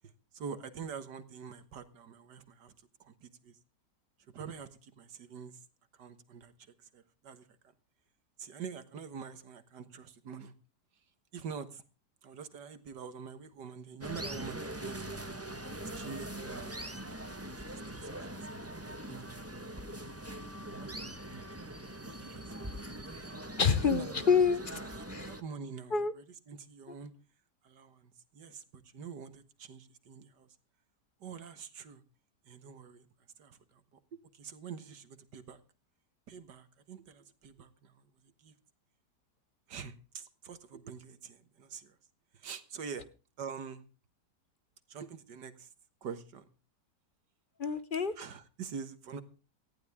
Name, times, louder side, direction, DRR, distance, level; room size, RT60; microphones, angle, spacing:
voice 1, 0.3-2.7 3.0-3.6 4.3-5.6 5.9-6.5 6.9-7.5 8.4-10.5 11.3-11.8 12.2-15.4 15.9-19.4 20.7-21.7 22.0-22.7 23.8-24.1 24.7-27.1 27.6-30.5 31.2-32.0 32.5-33.1 33.4-33.8 34.1-35.6 36.3-38.5 39.7-42.0 42.3-43.1 43.4-43.8 44.9-45.7 46.0-46.5 48.2-49.2, right 6 dB, 75° right, 12 dB, 2.0 m, -46 dB
sound 1, 14.0-25.4, right 1 dB, 10° right, 1.2 m, -42 dB
voice 2, 23.6-24.8 25.1-25.3 25.9-26.1 47.6-48.1, left 6 dB, 40° left, 14 dB, 0.8 m, -27 dB
18.0 x 14.5 x 3.6 m, 0.35 s
omnidirectional pair, 1.8 m